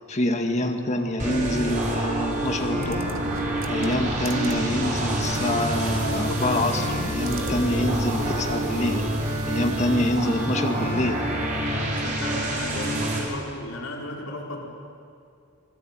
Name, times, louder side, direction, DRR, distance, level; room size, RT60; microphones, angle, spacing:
voice 1, 0.1-3.4 3.7-9.0 9.5-11.2, left 1 dB, 35° left, 5 dB, 2.1 m, -26 dB
sound 1, 1.2-13.2, right 1 dB, 40° right, 5.6 m, -27 dB
sound 2, 2.7-8.0, right 3 dB, 65° right, 1.4 m, -36 dB
voice 2, 11.8-14.7, left 1 dB, 85° left, -1 dB, 5.3 m, -35 dB
26.0 x 20.5 x 9.3 m, 2.4 s
head